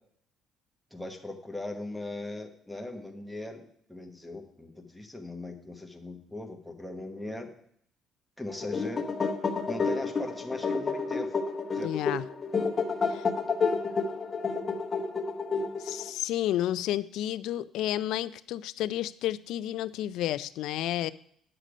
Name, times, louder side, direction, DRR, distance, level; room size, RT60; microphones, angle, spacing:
voice 1, 0.9-7.5 8.4-9.0 9.7-11.4 11.7-12.0, left 2 dB, ahead, 2 dB, 1.1 m, -39 dB
sound 1, 8.5-16.1, left 4 dB, 25° left, 1.0 m, -30 dB
voice 2, 11.8-12.2 13.1-13.3 15.8-21.1, left 13 dB, 70° left, 16 dB, 0.4 m, -31 dB
9.9 x 6.7 x 5.0 m, 0.66 s
cardioid pair, 165°, 0 cm